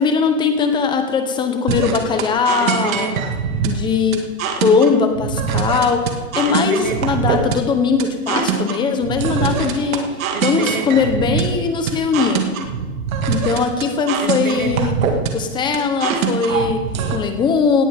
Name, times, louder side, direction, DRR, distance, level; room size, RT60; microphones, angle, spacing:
voice 1, 0.0-3.2 3.6-10.1 10.4-12.5 13.3-15.1 15.3-17.8, left 5 dB, 10° left, 6 dB, 1.0 m, -20 dB
sound 1, 1.7-17.2, right 6 dB, 60° right, 2.2 m, -23 dB
18.0 x 15.5 x 3.7 m, 1.5 s
hypercardioid pair, 155°, 47 cm